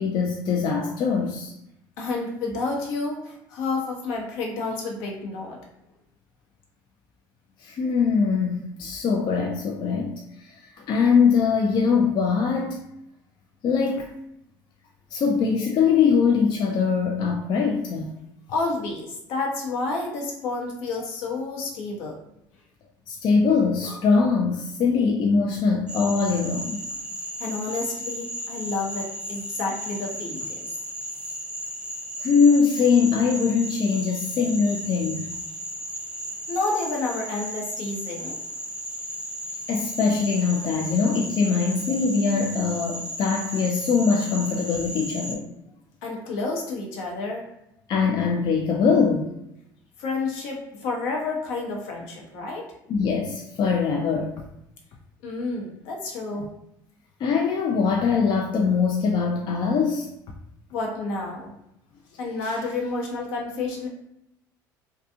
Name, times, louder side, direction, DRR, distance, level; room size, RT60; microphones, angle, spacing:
voice 1, 0.0-1.5 7.6-12.8 13.6-14.1 15.1-18.1 23.1-26.9 32.2-35.3 39.7-45.5 47.9-49.3 52.9-54.4 56.4-56.5 57.2-60.1, left 5 dB, 45° left, 1 dB, 0.4 m, -22 dB
voice 2, 2.0-5.6 18.5-22.2 27.4-30.8 36.5-38.4 46.0-47.5 50.0-52.7 55.2-56.5 60.7-61.5 62.2-63.9, left 3 dB, 65° left, -1 dB, 0.8 m, -30 dB
Frog, 25.9-45.4, equal, 10° right, 0.6 m, -35 dB
2.4 x 2.3 x 2.6 m, 0.81 s
hypercardioid pair, 65°, 11 cm